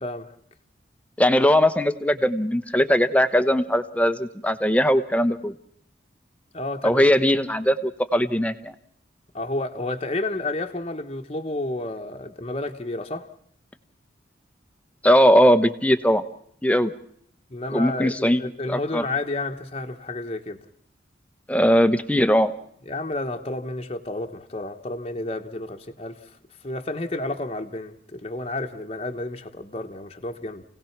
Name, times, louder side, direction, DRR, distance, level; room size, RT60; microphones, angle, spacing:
voice 1, 0.0-0.3 6.5-7.0 9.3-13.3 17.5-20.6 22.8-26.4 26.6-30.6, left 2 dB, 30° left, 1.2 m, -31 dB
voice 2, 1.2-5.5 6.8-8.7 15.0-16.2 16.6-16.9 17.7-18.4 18.7-19.0 21.5-22.5, equal, 5° left, 0.9 m, -19 dB
28.5 x 17.5 x 6.0 m
head